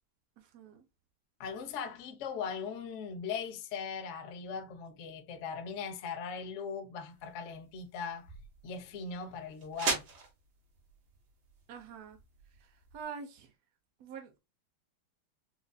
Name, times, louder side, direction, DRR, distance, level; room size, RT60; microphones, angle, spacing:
voice 1, 0.4-0.8 11.7-12.2 12.9-13.5 14.0-14.4, right 6 dB, 65° right, 1.0 m, -45 dB
voice 2, 1.4-8.3 8.6-10.0, left 6 dB, 75° left, 0.7 m, -39 dB
sound 1, 7.1-13.0, right 4 dB, 80° right, 2.0 m, -41 dB
4.9 x 2.4 x 2.2 m
omnidirectional pair, 2.1 m